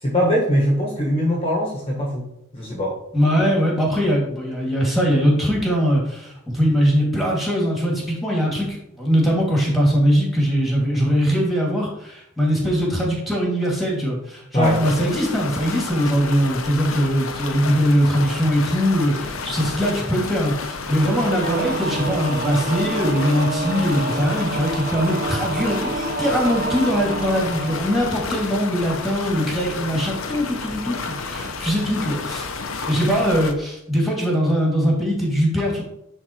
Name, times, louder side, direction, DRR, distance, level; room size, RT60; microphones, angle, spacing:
voice 1, 0.0-2.3 2.5-2.9 14.5-14.8, equal, 25° left, -2 dB, 1.4 m, -21 dB
voice 2, 3.1-35.8, equal, ahead, -3 dB, 2.3 m, -21 dB
sound 1, 14.6-33.5, left 4 dB, 65° left, 0.8 m, -31 dB
Singing / Musical instrument, 21.1-28.8, right 3 dB, 40° right, 0.6 m, -28 dB
9.9 x 4.1 x 4.5 m, 0.79 s
head